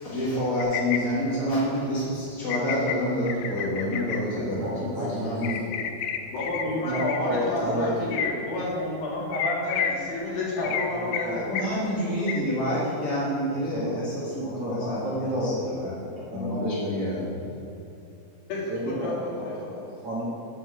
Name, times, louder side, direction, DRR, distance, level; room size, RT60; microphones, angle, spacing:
voice 1, 0.0-5.8 11.5-15.9 16.3-17.5, equal, 45° left, -8 dB, 1.0 m, -28 dB
sound 1, 0.6-1.0 2.5-2.9 3.3-4.2 5.4-6.6 6.9-7.2 8.1-8.3 9.3-9.9 10.6-10.8 11.1-11.2 11.5-11.7 12.3-12.4, left 9 dB, 85° left, 2.1 m, -29 dB
voice 2, 4.3-5.6 6.8-7.0 7.2-8.2 10.6-11.4 13.5-14.0 14.4-15.7 16.3-17.0 18.7-20.3, equal, 50° right, -8 dB, 2.1 m, -32 dB
voice 3, 6.3-11.6 18.5-19.7, left 1 dB, 65° left, -5 dB, 3.7 m, -30 dB
7.6 x 7.1 x 7.7 m, 2.8 s
omnidirectional pair, 4.7 m